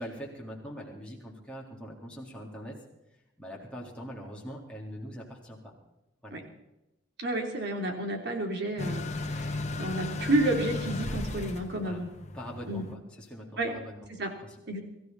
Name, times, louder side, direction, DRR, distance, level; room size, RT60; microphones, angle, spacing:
voice 1, 0.0-2.7 3.4-5.7 6.2-6.4 11.8-12.0 12.3-14.1 14.4-14.6, equal, 5° left, -4 dB, 3.7 m, -42 dB
voice 2, 7.2-12.1 12.7-12.8 13.6-13.7 14.2-14.3 14.7-14.8, right 1 dB, 55° right, 2 dB, 3.2 m, -30 dB
sound 1, 8.8-12.9, left 2 dB, 35° left, 1.5 m, -35 dB
23.5 x 14.5 x 4.1 m, 0.94 s
head